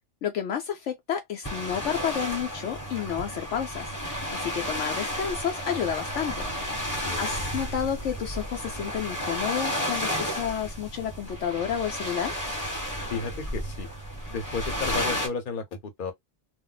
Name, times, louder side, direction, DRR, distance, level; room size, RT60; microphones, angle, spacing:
voice 1, 0.2-3.9 4.3-6.5 7.2-12.3, left 9 dB, 70° left, 0.9 m, -30 dB
sound 1, 1.4-15.3, equal, 15° left, 1.1 m, -32 dB
voice 2, 7.0-7.4 13.1-13.9 14.3-16.1, left 5 dB, 45° left, 0.9 m, -33 dB
2.4 x 2.1 x 3.8 m
omnidirectional pair, 1.3 m